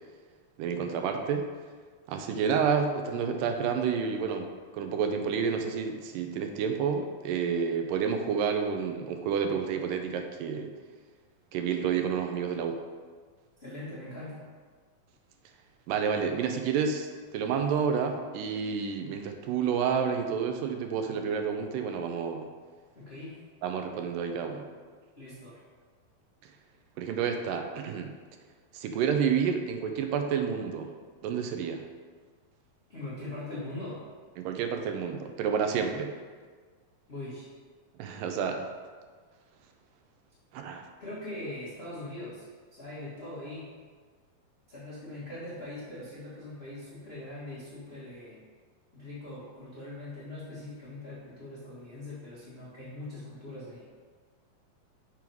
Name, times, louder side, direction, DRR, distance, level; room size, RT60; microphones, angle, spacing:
voice 1, 0.6-1.5 2.1-10.7 11.5-12.8 15.9-22.5 23.6-24.7 27.0-28.1 28.7-30.9 31.2-31.9 34.4-36.1 38.0-38.7 40.5-40.9, right 6 dB, 80° right, 5 dB, 2.2 m, -29 dB
voice 2, 13.6-14.4 22.9-23.4 25.1-25.6 32.9-34.0 37.1-37.5 41.0-43.7 44.7-48.4 48.9-53.9, left 1 dB, 85° left, -10 dB, 0.5 m, -41 dB
6.2 x 5.3 x 4.5 m, 1.5 s
omnidirectional pair, 3.9 m